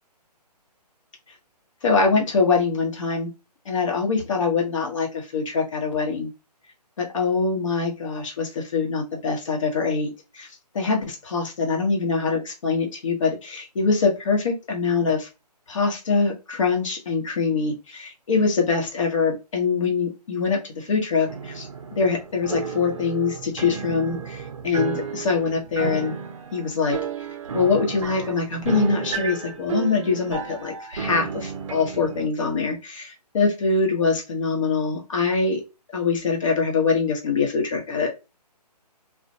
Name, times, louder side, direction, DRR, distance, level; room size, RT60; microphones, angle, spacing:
voice 1, 1.8-3.3 3.7-6.3 7.0-10.5 10.7-15.3 15.7-21.7 21.9-26.1 26.5-27.0 27.5-35.6 35.9-38.1, left 4 dB, 50° left, 1 dB, 1.0 m, -24 dB
sound 1, 21.3-32.3, right 6 dB, 50° right, 0.5 m, -32 dB
2.4 x 2.1 x 2.6 m, 0.27 s
figure-of-eight pair, 150°, 21 cm